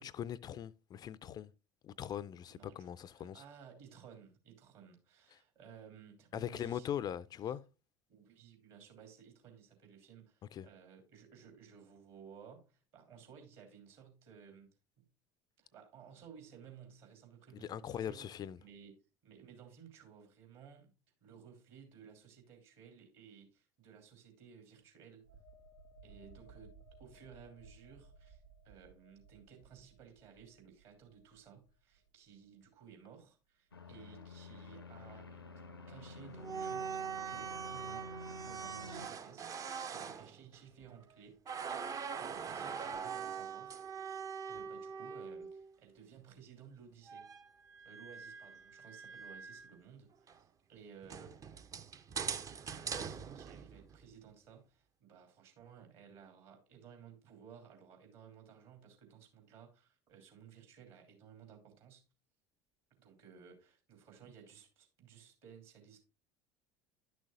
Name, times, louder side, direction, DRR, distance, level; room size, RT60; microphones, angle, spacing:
voice 1, 0.0-1.5 1.8-3.4 5.3-5.4 6.3-7.6 10.5-10.7 17.6-18.6, left 10 dB, 35° left, 0.4 m, -41 dB
voice 2, 2.5-2.9 3.1-6.9 7.4-7.5 8.1-14.7 15.0-15.1 15.6-18.9 19.2-20.9 21.2-25.2 26.0-35.4 35.9-41.4 41.9-43.8 44.5-47.3 47.8-51.4 52.6-62.0 63.0-66.0, right 7 dB, 55° right, 3.0 m, -57 dB
sound 1, 25.2-32.7 33.0-33.2, right 3 dB, 85° right, 1.2 m, -60 dB
sound 2, 33.7-39.1, left 2 dB, 90° left, 0.6 m, -50 dB
sound 3, 36.3-41.1 41.5-45.7 47.1-49.8 50.3-50.4 51.0-54.1, right 6 dB, 30° right, 0.6 m, -43 dB
11.5 x 6.3 x 2.5 m
figure-of-eight pair, 65°, 12 cm